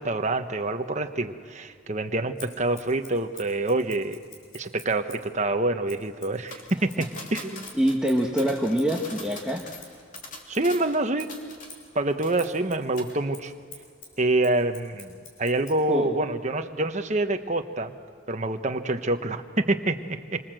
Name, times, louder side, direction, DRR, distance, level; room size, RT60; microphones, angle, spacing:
voice 1, 0.0-4.2 4.5-7.7 10.5-11.4 11.9-13.5 14.2-17.9 18.3-20.4, right 2 dB, 35° right, 7 dB, 1.1 m, -26 dB
Scissors, 2.4-5.3 5.9-10.7 11.2-15.8, left 4 dB, 80° left, 6.2 m, -48 dB
sound 1, 6.5-11.9 12.2-12.7 13.0-13.2, left 3 dB, 40° left, 3.0 m, -43 dB
voice 2, 7.7-9.7 15.9-16.1, equal, 5° right, -2 dB, 1.4 m, -25 dB
27.5 x 25.0 x 7.7 m, 2.1 s
head